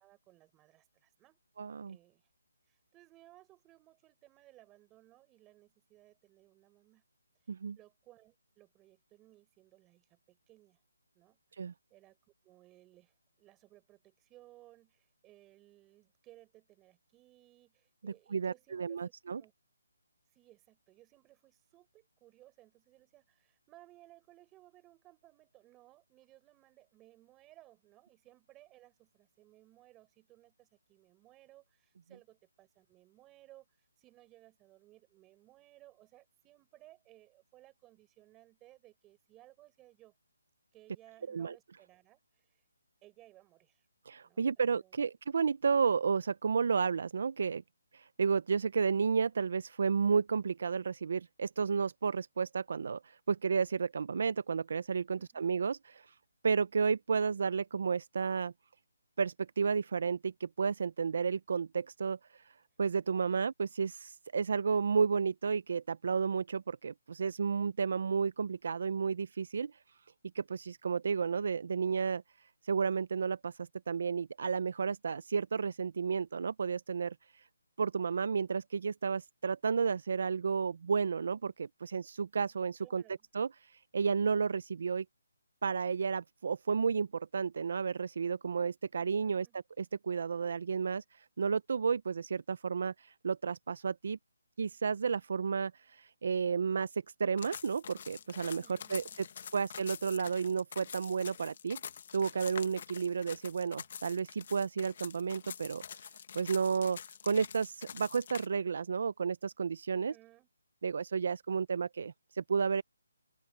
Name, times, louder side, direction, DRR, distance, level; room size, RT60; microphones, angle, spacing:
voice 1, 0.0-1.4 1.9-2.3 2.7-7.0 7.4-7.5 7.7-10.8 11.1-11.6 11.9-12.2 12.4-19.5 20.3-40.1 40.7-42.6 43.0-43.9 44.2-45.0 55.2-55.6 63.3-63.4 82.8-83.3 89.0-89.6 98.6-99.2 109.9-110.5, right 16 dB, 10° right, 5.0 m, -61 dB
voice 2, 1.6-2.0 7.5-7.8 11.5-11.7 18.0-19.4 41.3-41.5 44.1-47.6 47.9-56.1 56.4-58.5 59.2-69.7 70.3-72.2 72.6-77.4 77.8-83.0 83.3-85.0 85.6-89.5 89.8-94.2 94.6-98.6 98.9-99.0 99.5-101.8 102.1-105.8 106.3-110.1 110.8-112.8, right 5 dB, 45° right, 0.5 m, -32 dB
sound 1, 97.4-108.5, left 7 dB, 35° left, 1.4 m, -46 dB
open air
hypercardioid pair, 175°, 0 cm